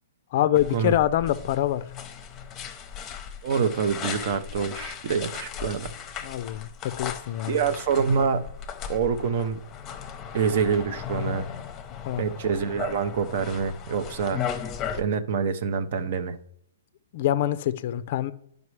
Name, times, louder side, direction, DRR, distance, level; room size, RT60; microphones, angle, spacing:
voice 1, 0.3-1.8 6.2-7.6 12.0-12.2 17.1-18.3, left 12 dB, 45° left, 0.4 m, -25 dB
sound 1, 0.5-15.0, left 8 dB, 20° left, 0.7 m, -37 dB
voice 2, 3.4-5.9 7.5-8.4 8.9-9.6 10.3-11.4 12.1-14.4 14.9-16.4, right 6 dB, 50° right, 0.6 m, -26 dB
11.0 x 5.1 x 3.2 m
hypercardioid pair, 150°, 0 cm